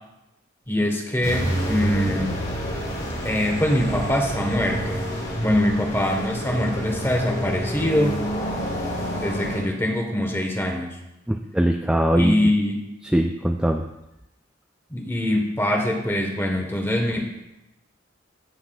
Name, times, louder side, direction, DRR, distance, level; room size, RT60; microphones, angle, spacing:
voice 1, 0.7-2.4 3.2-5.1 5.4-8.2 9.2-11.0 12.1-12.8 14.9-17.2, left 1 dB, 10° left, 2 dB, 1.3 m, -23 dB
sound 1, 1.2-9.6, equal, 55° left, 2.5 m, -28 dB
voice 2, 11.3-12.5 13.0-13.8, right 1 dB, 5° right, 3 dB, 0.3 m, -21 dB
16.5 x 6.0 x 2.4 m, 0.92 s
head